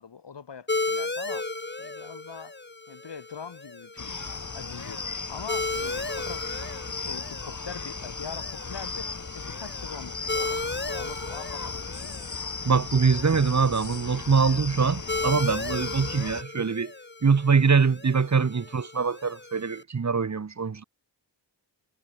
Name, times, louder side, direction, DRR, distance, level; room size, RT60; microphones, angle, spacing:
voice 1, 0.0-1.5 1.8-2.5 2.9-4.2 4.5-5.0 5.3-12.3, left 6 dB, 80° left, 3.0 m, -43 dB
sound 1, 0.7-19.8, left 3 dB, 25° left, 2.5 m, -36 dB
sound 2, 4.0-16.4, left 4 dB, 45° left, 3.4 m, -36 dB
voice 2, 12.6-16.9 17.2-20.8, right 5 dB, 40° right, 1.1 m, -23 dB
wide cardioid pair, 110°, 42 cm